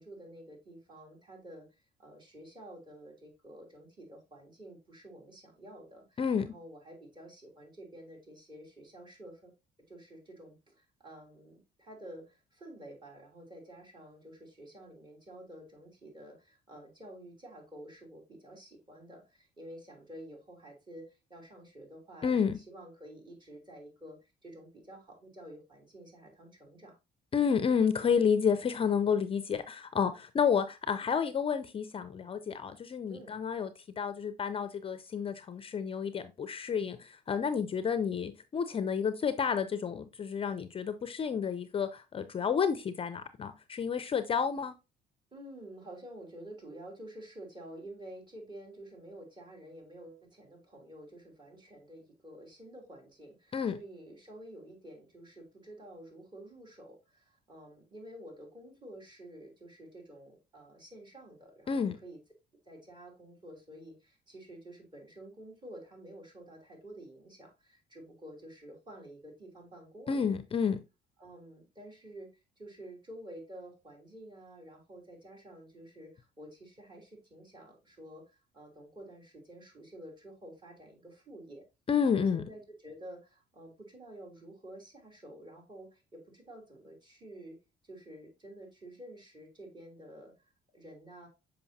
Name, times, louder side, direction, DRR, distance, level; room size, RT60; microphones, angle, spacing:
voice 1, 0.0-9.5 9.9-27.0 33.1-33.4 45.3-62.2 62.6-70.4 71.2-72.3 72.6-81.6 82.1-87.6 87.8-91.3, right 1 dB, 25° right, 2.9 m, -50 dB
voice 2, 6.2-6.5 22.2-22.6 27.3-44.7 53.5-53.8 61.7-62.0 70.1-70.8 81.9-82.4, left 6 dB, 35° left, 0.5 m, -30 dB
6.9 x 5.3 x 2.7 m
cardioid pair, 110°, 17 cm